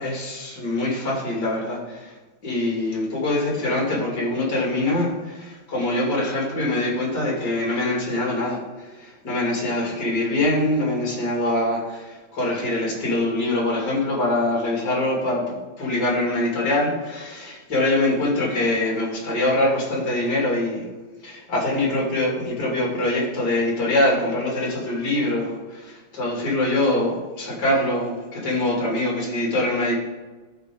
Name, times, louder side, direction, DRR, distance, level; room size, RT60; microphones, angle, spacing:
voice 1, 0.0-2.1 2.4-20.9 21.2-29.9, left 1 dB, 50° left, -3 dB, 3.2 m, -24 dB
14.0 x 4.7 x 3.8 m, 1.2 s
omnidirectional pair, 2.4 m